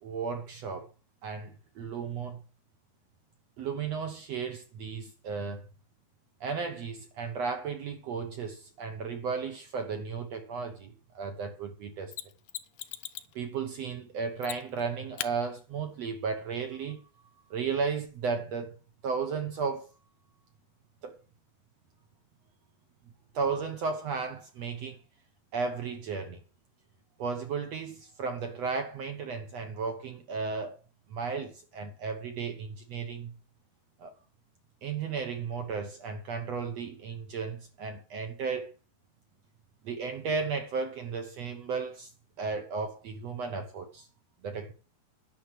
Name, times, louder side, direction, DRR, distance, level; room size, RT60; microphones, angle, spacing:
voice 1, 0.0-0.9 1.2-2.4 3.6-5.7 6.4-12.1 13.3-17.0 17.5-18.8 19.0-19.9 21.0-21.2 23.3-25.0 25.5-26.4 27.2-30.8 31.1-33.3 34.0-34.1 34.8-38.7 39.8-42.1 42.4-44.1 44.4-44.7, right 5 dB, 65° right, 1.7 m, -34 dB
Mechanisms, 12.1-13.4 14.4-14.8 15.2-15.3 18.1-18.2, left 14 dB, 80° left, 2.3 m, -39 dB
10.5 x 6.2 x 7.7 m
omnidirectional pair, 4.3 m